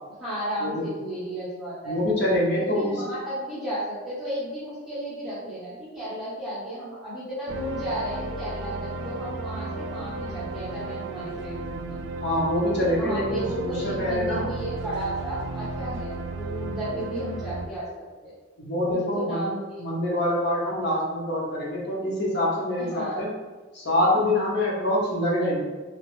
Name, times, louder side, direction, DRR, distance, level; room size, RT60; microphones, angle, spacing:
voice 1, 0.2-2.1 2.5-12.0 12.9-18.3 18.9-20.3 22.8-23.2, right 1 dB, ahead, -12 dB, 0.8 m, -33 dB
voice 2, 1.8-3.0 12.2-14.4 18.6-19.5 19.8-23.3 23.7-25.6, left 1 dB, 60° left, -5 dB, 0.8 m, -25 dB
sound 1, 7.5-17.7, right 2 dB, 70° right, 0.3 m, -34 dB
3.0 x 2.0 x 3.0 m, 1.3 s
head